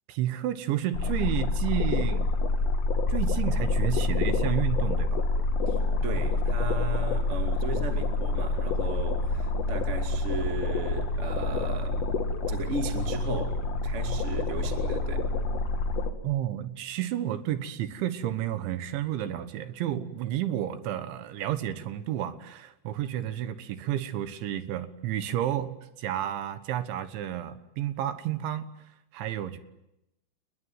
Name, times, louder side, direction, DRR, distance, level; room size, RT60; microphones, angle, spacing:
voice 1, 0.1-2.3 3.1-5.3 16.2-28.7 29.1-29.6, right 12 dB, 70° right, 3.5 m, -31 dB
sound 1, 0.9-16.1, left 3 dB, 50° left, 2.0 m, -27 dB
voice 2, 5.6-12.1 12.5-15.3, right 3 dB, 40° right, 0.9 m, -36 dB
30.0 x 21.0 x 9.3 m
omnidirectional pair, 5.8 m